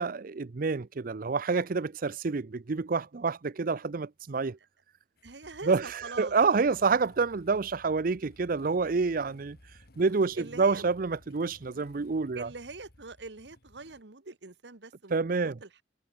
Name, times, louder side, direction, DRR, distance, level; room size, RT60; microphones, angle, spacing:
voice 1, 0.0-4.6 5.7-9.6 10.0-12.5 15.1-15.5, right 4 dB, 50° right, 0.6 m, -28 dB
Motorcycle / Engine starting, 5.2-14.0, left 1 dB, 60° left, 2.3 m, -57 dB
voice 2, 5.2-6.4 6.7-6.8 10.0-10.9 12.3-15.8, right 3 dB, 70° right, 1.4 m, -44 dB
head